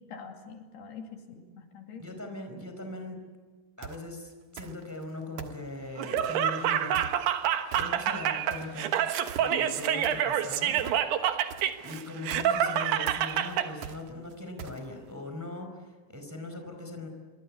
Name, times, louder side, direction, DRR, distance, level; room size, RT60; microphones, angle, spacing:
voice 1, 0.1-2.2 9.5-10.0, left 6 dB, 75° left, 3 dB, 4.4 m, -44 dB
voice 2, 2.0-3.2 3.8-7.1 7.7-8.9 9.4-10.8 11.8-17.1, left 2 dB, 5° right, 4 dB, 4.2 m, -40 dB
sound 1, 3.8-4.1 4.6-5.0 5.4-6.4 6.9-7.4 7.7-8.2 8.5-15.1, right 8 dB, 60° right, 2.2 m, -43 dB
Laughter, 6.0-13.7, right 10 dB, 75° right, 3.4 m, -27 dB
26.5 x 24.0 x 8.6 m, 1.4 s
omnidirectional pair, 4.8 m